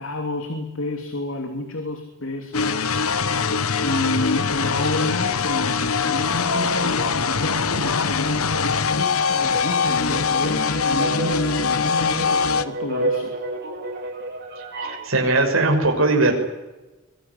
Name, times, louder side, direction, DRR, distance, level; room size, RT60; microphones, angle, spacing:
voice 1, 0.0-2.9 3.8-13.3, left 2 dB, 65° left, 5 dB, 3.0 m, -30 dB
sound 1, 2.5-12.7, left 5 dB, 90° left, 1.2 m, -22 dB
sound 2, 9.4-15.1, right 2 dB, 50° right, 5.5 m, -31 dB
voice 2, 14.6-16.3, right 2 dB, 70° right, 3 dB, 6.4 m, -20 dB
25.0 x 21.0 x 9.8 m, 1.1 s
head